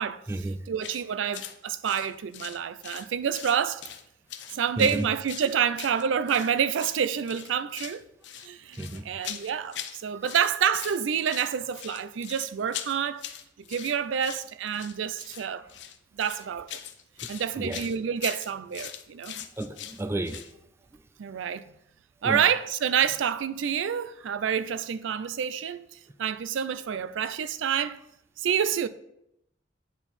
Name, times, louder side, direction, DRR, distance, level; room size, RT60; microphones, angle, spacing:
voice 1, 0.7-3.8 4.5-8.0 8.4-8.8 9.0-13.2 13.7-15.7 16.1-16.7 17.3-19.3 21.2-21.6 22.2-25.9 26.2-28.0 28.4-28.9, right 8 dB, 90° right, 0.4 m, -28 dB
sound 1, 0.8-1.0 1.3-1.6 1.8-3.1 3.3-4.0 4.3-6.5 6.8-7.0 7.3-10.0 10.2-11.0 11.2-20.5, left 10 dB, 65° left, 0.6 m, -41 dB
voice 2, 8.8-9.1 17.2-17.3 17.6-17.8 19.4-20.4 22.2-22.4, right 2 dB, 15° right, 0.3 m, -32 dB
8.8 x 4.4 x 4.1 m
head